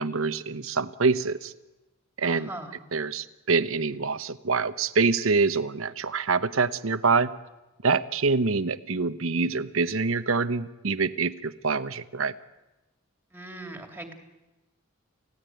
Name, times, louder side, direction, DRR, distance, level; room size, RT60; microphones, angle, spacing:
voice 1, 0.0-1.5 2.2-2.5 2.9-7.3 7.8-12.3, right 4 dB, 70° right, 13 dB, 1.0 m, -25 dB
voice 2, 2.2-2.7 13.3-14.1, right 2 dB, 10° right, 4 dB, 2.7 m, -40 dB
29.0 x 16.5 x 9.3 m, 1.1 s
head